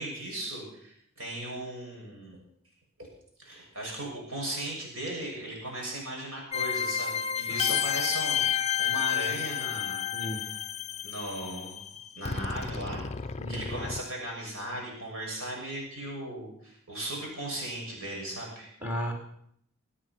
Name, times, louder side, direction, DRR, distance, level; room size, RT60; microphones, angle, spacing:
voice 1, 0.0-2.4 3.4-10.1 10.4-10.5 11.0-11.9 12.2-13.1 13.5-18.7, right 1 dB, 85° right, -2 dB, 7.1 m, -37 dB
sound 1, 6.5-14.0, left 9 dB, 30° left, 0.6 m, -31 dB
voice 2, 18.8-19.1, equal, 10° right, 0 dB, 3.8 m, -33 dB
24.0 x 8.7 x 6.2 m, 0.68 s
head